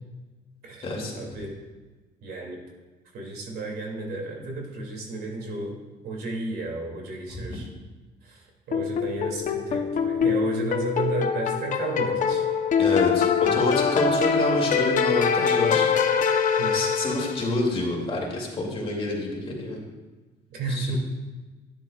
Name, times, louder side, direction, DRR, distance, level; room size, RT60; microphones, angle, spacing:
voice 1, 1.1-1.6 2.2-2.6 3.1-5.8 6.0-7.7 8.2-8.4 8.7-12.4 16.6-16.7 20.5-21.0, right 3 dB, 70° right, -1 dB, 2.6 m, -32 dB
sound 1, 8.7-17.6, left 6 dB, 50° left, 0.9 m, -24 dB
voice 2, 12.8-13.2 13.5-15.9 16.7-19.8 20.7-21.0, left 2 dB, 35° left, -2 dB, 2.6 m, -27 dB
12.0 x 10.0 x 2.4 m, 1.3 s
cardioid pair, 110°, 17 cm